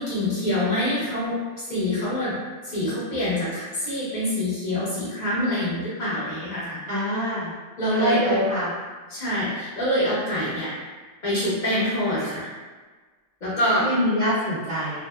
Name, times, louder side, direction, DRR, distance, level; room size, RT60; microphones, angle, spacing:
voice 1, 0.0-2.4 2.6-6.8 7.8-8.5 9.1-10.7 11.2-12.5 13.4-13.9, left 1 dB, 40° left, -9 dB, 0.9 m, -25 dB
voice 2, 6.9-7.5 7.9-8.7 13.8-15.0, equal, 45° right, -11 dB, 0.7 m, -25 dB
2.7 x 2.0 x 2.3 m, 1.4 s
omnidirectional pair, 1.4 m